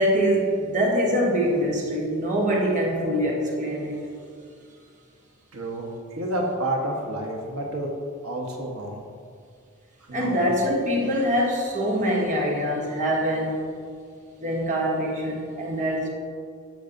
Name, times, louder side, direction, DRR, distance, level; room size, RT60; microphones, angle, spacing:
voice 1, 0.0-4.2 10.1-13.7 14.4-16.1, equal, 35° right, 1.1 m, -24 dB
voice 2, 5.5-7.9 8.2-9.0 10.1-10.4, right 1 dB, 90° right, 1.2 m, -29 dB
13.5 x 5.5 x 2.6 m
head